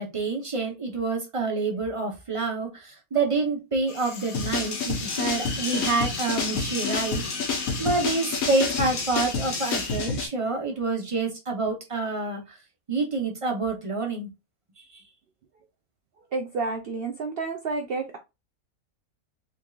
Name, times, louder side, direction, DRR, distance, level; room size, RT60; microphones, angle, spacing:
voice 1, 0.0-12.4 12.9-14.3 14.9-15.0, right 3 dB, 30° right, 0.7 m, -28 dB
sound 1, 3.9-10.0, left 4 dB, 45° left, 0.8 m, -38 dB
sound 2, 4.3-10.3, left 4 dB, 65° left, 1.4 m, -29 dB
voice 2, 16.3-18.2, right 3 dB, 70° right, 0.5 m, -30 dB
3.7 x 3.5 x 2.3 m
omnidirectional pair, 1.6 m